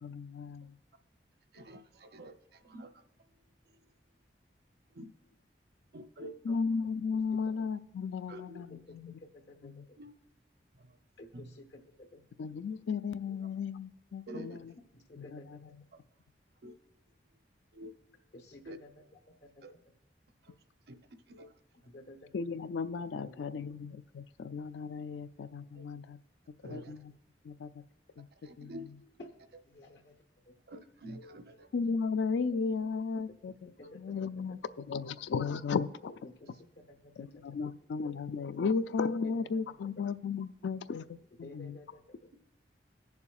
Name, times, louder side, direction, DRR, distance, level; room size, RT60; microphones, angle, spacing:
voice 1, 0.0-0.8 6.4-9.2 9.6-9.9 12.4-14.7 15.2-15.6 22.3-26.2 26.7-27.1 27.4-27.8 28.2-28.3 28.6-29.0 31.7-36.1 37.2-41.8, left 5 dB, 90° left, 14 dB, 0.4 m, -35 dB
voice 2, 1.5-2.9 4.9-5.1 5.9-6.5 8.3-8.7 10.0-10.1 10.7-11.0 11.3-11.5 14.3-14.6 16.6-16.7 17.7-17.9 18.7-18.8 19.6-19.7 20.4-20.5 20.9-21.0 21.3-21.5 25.7-25.8 26.6-26.9 28.4-28.9 30.7-31.7, equal, 60° right, 8 dB, 0.7 m, -47 dB
voice 3, 8.5-10.0 11.2-12.2 15.1-15.6 18.3-19.0 19.4-19.9 21.7-22.3 23.1-23.5 29.2-29.3 29.6-30.2 30.4-30.6 32.4-32.5 33.3-33.4 33.8-34.4 36.4-36.5 36.8-37.4 39.2-40.0 41.4-42.3, left 1 dB, 75° left, 4 dB, 1.0 m, -53 dB
20.5 x 7.0 x 2.4 m, 1.1 s
head